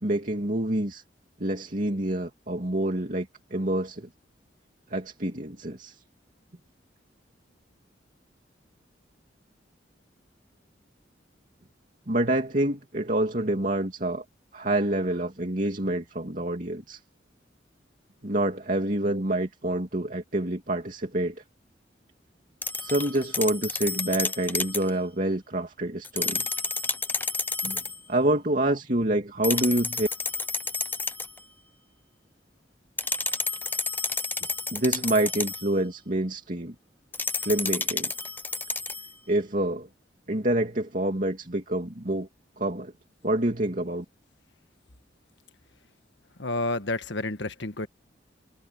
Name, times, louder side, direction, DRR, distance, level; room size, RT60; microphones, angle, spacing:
voice 1, 0.0-1.0 1.4-4.1 4.9-6.0 12.1-14.2 14.5-17.0 18.2-21.4 22.8-26.5 27.6-27.8 28.1-30.1 34.7-36.7 37.4-38.1 39.3-39.9 40.3-42.3 42.6-42.9 43.2-44.0, right 1 dB, 45° right, 2.6 m, -27 dB
sound 1, 22.6-24.9 26.0-28.0 29.4-31.4 33.0-35.7 37.1-39.1, left 4 dB, 10° left, 0.6 m, -30 dB
voice 2, 46.4-47.9, left 2 dB, 80° left, 1.5 m, -30 dB
head